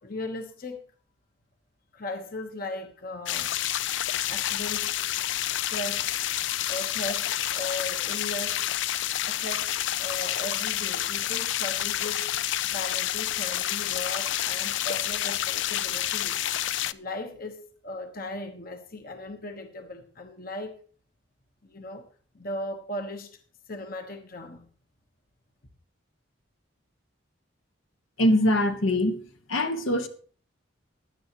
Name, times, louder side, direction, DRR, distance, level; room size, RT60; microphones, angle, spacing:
voice 1, 0.0-0.8 1.9-3.5 4.3-5.0 5.7-6.1 6.7-8.6 9.2-9.7 10.0-12.3 12.6-16.4 16.9-20.8 21.6-22.1 22.3-23.4 23.7-24.7, left 1 dB, 45° left, 1.2 m, -37 dB
sound 1, 3.3-16.9, left 12 dB, 60° left, 0.4 m, -29 dB
voice 2, 28.2-29.1 29.5-30.1, left 1 dB, 80° left, 1.5 m, -22 dB
16.5 x 11.0 x 3.0 m
head